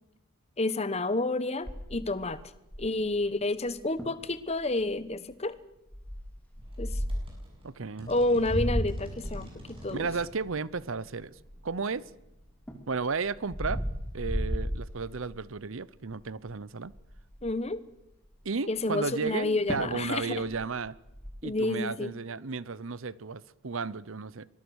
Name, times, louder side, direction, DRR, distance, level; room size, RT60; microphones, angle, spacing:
voice 1, 0.6-2.4 2.8-5.6 6.8-7.0 8.1-9.5 9.8-10.1 17.4-17.8 18.7-20.4 21.4-22.1, left 2 dB, 30° left, 15 dB, 1.0 m, -29 dB
sound 1, 1.7-3.1 3.7-3.8 4.0-4.3 4.8-5.1 5.9-7.4 8.1-12.0 12.4-15.5 15.9-16.2 16.5-16.6 16.9-17.6 19.3-19.4 19.7-20.0 20.3-21.3, equal, 5° left, 2.7 m, -34 dB
sound 2, 6.6-13.0, equal, 25° right, 7.4 m, -50 dB
voice 2, 7.6-8.1 9.9-11.3 11.6-12.0 12.9-13.8 14.1-16.9 18.4-21.0 21.4-24.5, right 4 dB, 65° right, 20 dB, 0.8 m, -33 dB
25.0 x 19.5 x 6.4 m, 0.88 s
head